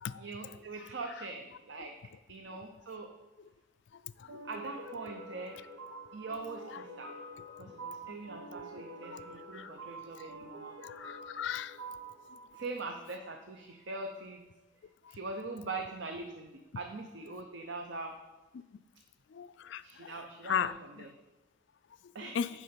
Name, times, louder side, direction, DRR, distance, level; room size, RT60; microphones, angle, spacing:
voice 1, 0.2-1.9 2.3-3.1 4.4-5.6 6.1-7.2 7.6-10.8 12.5-14.4 15.1-18.2 19.8-21.1 22.1-22.4, right 3 dB, 60° right, 0.6 m, -42 dB
sound 1, 4.3-13.5, right 2 dB, 90° right, 1.0 m, -47 dB
voice 2, 10.8-11.8 19.3-20.1 20.4-21.1 22.3-22.5, left 8 dB, 60° left, 0.3 m, -36 dB
9.7 x 3.8 x 6.9 m
head